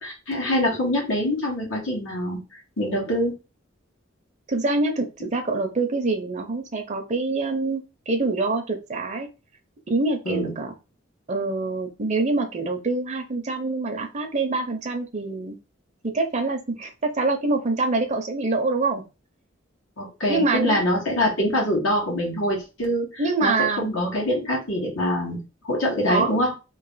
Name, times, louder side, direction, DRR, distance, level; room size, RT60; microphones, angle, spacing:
voice 1, 0.0-2.4 2.8-3.3 10.2-10.5 20.0-26.5, equal, 85° left, -2 dB, 1.6 m, -24 dB
voice 2, 4.5-9.3 9.9-10.7 11.3-15.6 16.0-19.0 20.3-20.8 23.2-23.9 26.1-26.4, right 3 dB, 35° right, 5 dB, 0.6 m, -25 dB
3.1 x 2.4 x 3.9 m, 0.29 s
head